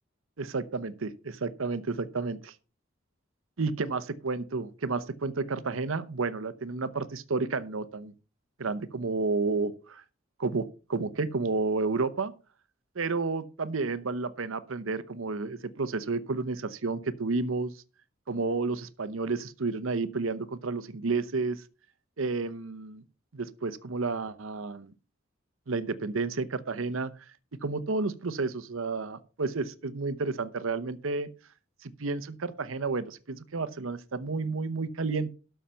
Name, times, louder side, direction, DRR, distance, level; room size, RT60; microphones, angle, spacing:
voice 1, 0.4-2.5 3.6-8.1 8.6-10.0 10.4-12.3 13.0-17.8 18.3-21.6 22.2-23.0 23.3-24.9 25.7-27.1 27.6-31.3 31.8-35.3, right 3 dB, 80° right, 14 dB, 0.8 m, -31 dB
12.5 x 5.7 x 5.7 m, 0.35 s
head